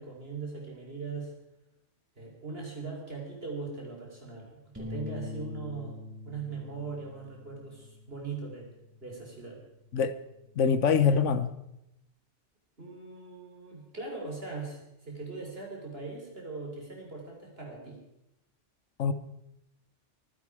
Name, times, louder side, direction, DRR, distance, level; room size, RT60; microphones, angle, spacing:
voice 1, 0.0-1.3 2.2-6.0 6.3-8.7 9.0-9.6 12.8-18.0, right 4 dB, 55° right, -1 dB, 3.9 m, -40 dB
sound 1, 4.8-11.0, left 3 dB, 10° right, 2.1 m, -45 dB
voice 2, 10.6-11.5 19.0-19.1, left 6 dB, 80° left, 13 dB, 1.3 m, -24 dB
23.5 x 10.5 x 4.8 m, 0.86 s
omnidirectional pair, 1.2 m